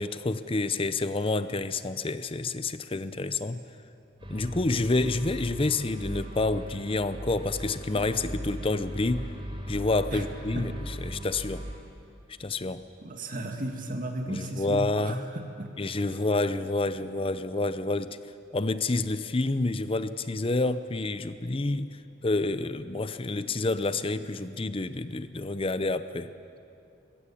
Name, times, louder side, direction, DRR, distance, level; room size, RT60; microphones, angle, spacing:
voice 1, 0.0-3.6 4.3-9.3 9.7-11.6 12.4-12.8 14.3-15.2 15.8-18.2 18.5-21.9 22.2-26.3, left 2 dB, 30° left, 13 dB, 0.6 m, -28 dB
sound 1, 4.2-11.7, equal, 30° right, 3.7 m, -38 dB
voice 2, 13.0-15.7 16.1-16.2, right 1 dB, 45° right, 3 dB, 2.1 m, -35 dB
21.0 x 16.5 x 8.5 m, 2.6 s
head